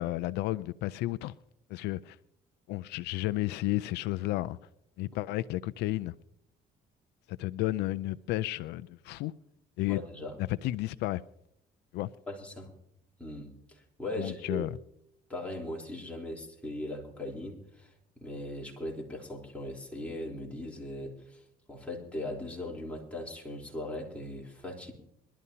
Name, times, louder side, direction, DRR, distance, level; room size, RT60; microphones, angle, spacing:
voice 1, 0.0-1.3 1.7-2.2 2.7-4.6 5.0-6.1 7.3-9.3 9.8-10.0 10.4-11.2 11.9-12.1 14.2-14.7, left 17 dB, 85° left, 0.4 m, -32 dB
voice 2, 9.9-10.4 12.3-12.7 13.2-14.7 15.3-21.4 21.7-24.9, left 1 dB, 10° left, 3.6 m, -39 dB
22.5 x 12.5 x 2.8 m
cardioid pair, 110°, 17 cm